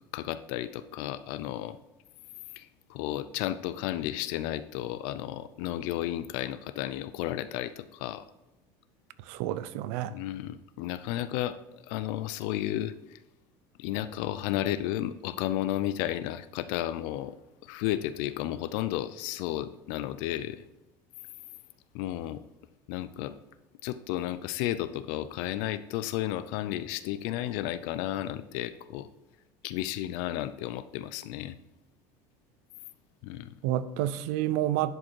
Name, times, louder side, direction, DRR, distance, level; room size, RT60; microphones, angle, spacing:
voice 1, 0.1-1.8 2.5-8.2 10.1-13.2 13.8-17.4 17.6-20.6 21.9-22.4 22.9-23.4 23.8-29.1 29.6-31.6 33.2-33.5, left 13 dB, 70° left, 13 dB, 0.4 m, -33 dB
voice 2, 9.3-10.2 33.6-35.0, right 12 dB, 85° right, 15 dB, 0.5 m, -29 dB
11.0 x 5.2 x 4.6 m, 0.97 s
cardioid pair, 175°, 8 cm